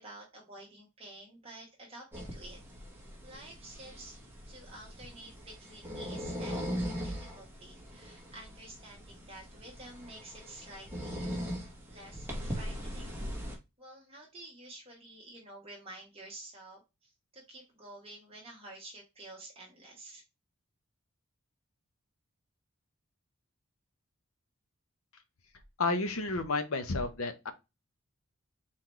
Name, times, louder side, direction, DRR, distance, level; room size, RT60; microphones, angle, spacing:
voice 1, 0.0-2.6 3.2-4.2 4.5-13.2 13.8-20.2, right 2 dB, 25° right, 1.1 m, -50 dB
sound 1, 2.1-13.6, equal, 10° right, 1.3 m, -40 dB
voice 2, 25.8-27.5, left 3 dB, 75° left, 0.9 m, -31 dB
4.2 x 3.9 x 3.0 m
head